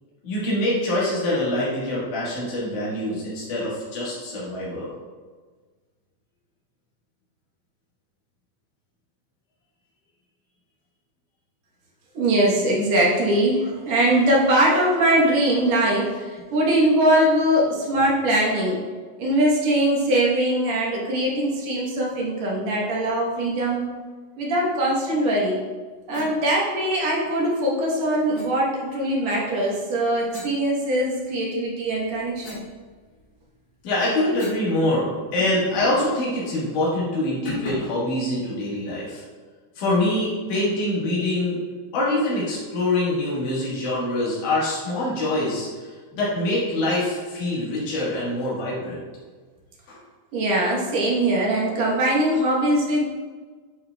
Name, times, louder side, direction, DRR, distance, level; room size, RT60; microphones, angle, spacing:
voice 1, 0.2-4.9 33.8-39.2 39.8-41.6 41.9-49.0 49.9-50.0, left 1 dB, 85° left, -7 dB, 3.0 m, -25 dB
voice 2, 12.1-18.8 19.2-23.9 24.4-25.6 26.1-32.6 50.3-53.0, right 1 dB, 65° right, -4 dB, 2.2 m, -21 dB
sound 1, 26.1-26.3 28.3-28.5 30.3-31.3 31.8-34.7 35.0-35.1 35.4-36.0 36.4-36.6 37.5-38.0, left 2 dB, 50° left, 1.9 m, -39 dB
10.0 x 4.3 x 2.2 m, 1.4 s
omnidirectional pair, 3.5 m